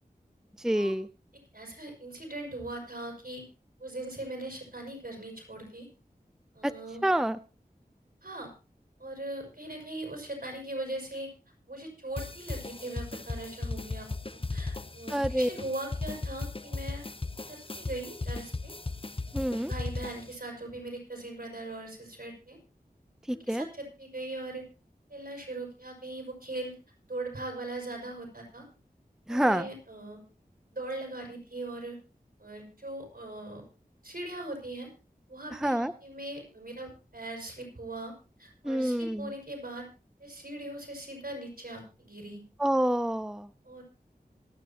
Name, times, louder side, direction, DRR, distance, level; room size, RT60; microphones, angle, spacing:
voice 1, 0.6-1.1 6.6-6.7 7.0-7.4 15.1-15.5 19.3-19.7 23.3-23.7 29.3-29.7 35.6-35.9 38.6-39.3 42.6-43.5, right 1 dB, 5° right, 12 dB, 0.6 m, -27 dB
voice 2, 1.5-3.4 3.8-5.9 6.5-7.1 8.2-8.5 9.0-11.3 11.7-17.0 17.5-18.7 19.6-22.6 23.3-24.6 25.1-26.8 27.0-28.6 29.3-30.2 30.7-32.0 32.4-33.6 34.0-34.9 35.3-38.1 38.4-39.9 40.2-42.4 43.6-43.8, right 2 dB, 65° right, 2 dB, 6.1 m, -40 dB
sound 1, 12.2-20.3, left 3 dB, 35° left, 0.8 m, -37 dB
26.5 x 9.0 x 2.9 m, 0.34 s
wide cardioid pair, 55°, 16 cm